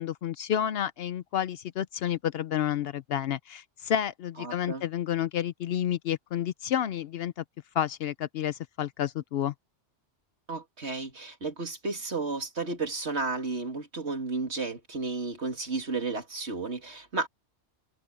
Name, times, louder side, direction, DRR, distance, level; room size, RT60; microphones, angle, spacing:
voice 1, 0.0-7.4 7.7-9.5, left 10 dB, 65° left, 0.7 m, -30 dB
voice 2, 4.4-4.8 10.5-17.3, right 3 dB, 70° right, 2.9 m, -33 dB
omnidirectional pair, 1.2 m